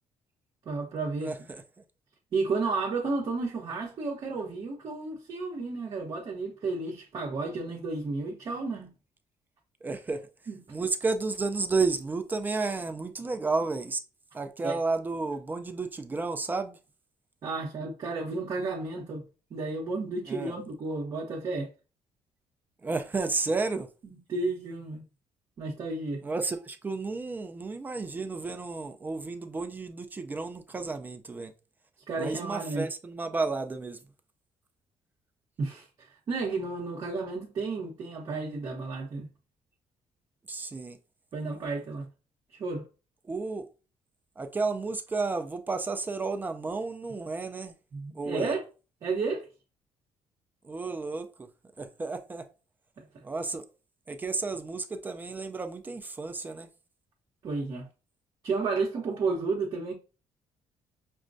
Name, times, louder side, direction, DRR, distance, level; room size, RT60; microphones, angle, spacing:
voice 1, 0.6-1.3 2.3-8.9 10.5-10.6 14.6-14.8 17.4-19.2 19.5-21.7 24.0-25.0 25.6-26.2 32.1-32.9 35.6-39.3 41.3-42.0 42.6-42.9 47.9-48.6 49.0-49.5 53.0-53.1 57.4-57.9 58.4-59.9, right 3 dB, 40° right, 0.9 m, -32 dB
voice 2, 1.2-1.6 9.8-10.3 10.7-14.0 14.3-16.8 20.3-20.5 22.8-23.9 26.2-31.5 32.2-34.0 40.5-41.0 43.3-43.7 44.4-47.7 48.1-48.5 50.6-51.5 51.8-52.5 53.2-53.6 54.1-56.7, right 3 dB, 15° right, 0.4 m, -32 dB
6.0 x 2.2 x 2.6 m
cardioid pair, 165°, 11 cm